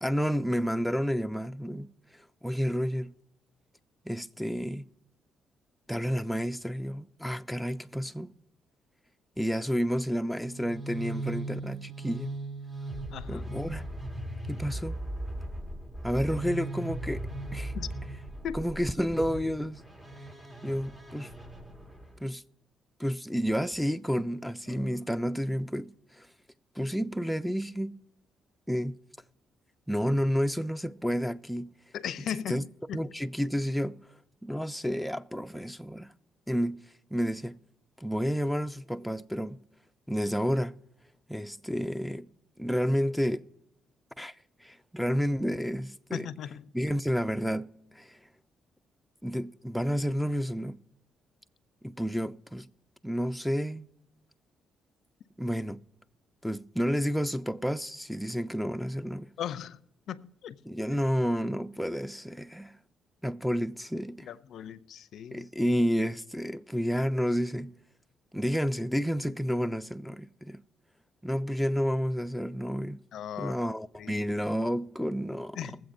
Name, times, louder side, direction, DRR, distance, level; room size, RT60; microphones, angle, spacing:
voice 1, 0.0-1.9 2.4-3.1 4.1-4.9 5.9-8.3 9.4-12.3 13.3-13.8 14.5-15.0 16.0-17.7 18.5-19.8 20.6-21.3 22.2-22.4 23.0-26.3 26.8-28.0 28.7-29.0 29.9-31.7 32.5-32.6 32.9-34.0 34.4-36.1 36.5-37.6 38.0-39.6 40.1-40.8 41.3-42.3 42.6-43.4 44.2-44.3 44.6-46.3 46.7-47.7 47.9-48.2 49.2-50.8 51.8-52.7 53.0-53.8 55.4-55.8 56.4-59.3 60.7-62.8 63.2-64.3 65.3-67.7 68.3-70.6 71.2-73.0 73.4-75.6, equal, ahead, 0.5 m, -30 dB
sound 1, 10.4-22.2, right 1 dB, 20° right, 1.8 m, -38 dB
voice 2, 13.1-13.4 17.7-17.9 18.4-18.7 24.7-25.0 31.9-33.0 46.1-46.7 59.4-59.8 60.1-60.6 64.2-65.5 73.1-73.6 74.0-74.2 75.6-75.8, left 9 dB, 70° left, 0.4 m, -38 dB
21.5 x 7.6 x 2.6 m
supercardioid pair, 60°, 0 cm